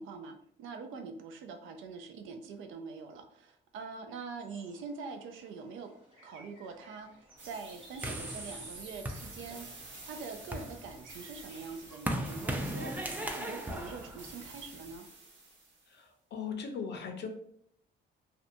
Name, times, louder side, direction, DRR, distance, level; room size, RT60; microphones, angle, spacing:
voice 1, 0.0-5.9 6.2-7.1 7.4-9.7 10.1-15.1, right 4 dB, 85° right, 6 dB, 0.4 m, -44 dB
sound 1, 4.4-13.1, right 1 dB, 25° right, 1.2 m, -60 dB
sound 2, 7.4-15.8, right 2 dB, 70° right, 1.0 m, -49 dB
sound 3, 8.0-9.8 10.3-14.9, right 1 dB, 10° right, 0.3 m, -38 dB
voice 2, 15.9-17.3, left 6 dB, 60° left, 5 dB, 0.6 m, -39 dB
2.6 x 2.2 x 2.5 m, 0.68 s
cardioid pair, 90°, 20 cm